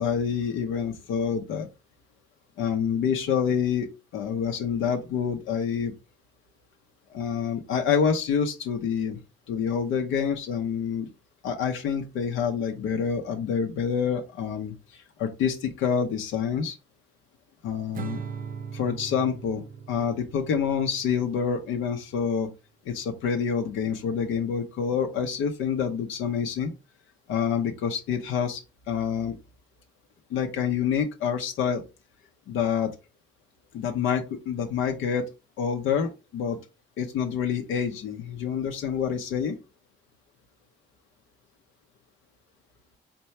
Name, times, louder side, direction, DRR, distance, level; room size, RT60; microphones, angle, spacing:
voice 1, 0.0-1.7 2.6-5.9 7.1-9.2 9.5-11.1 11.4-14.7 15.2-16.8 17.6-18.2 18.7-19.6 19.9-22.5 22.8-26.7 27.3-28.6 28.9-29.4 30.3-31.8 32.5-32.9 33.7-35.3 35.6-36.6 37.0-39.6, left 7 dB, 90° left, 3 dB, 0.8 m, -27 dB
Acoustic guitar / Strum, 17.9-21.3, right 6 dB, 45° right, 0.6 m, -39 dB
4.3 x 2.3 x 4.2 m, 0.27 s
cardioid pair, 90°, 20 cm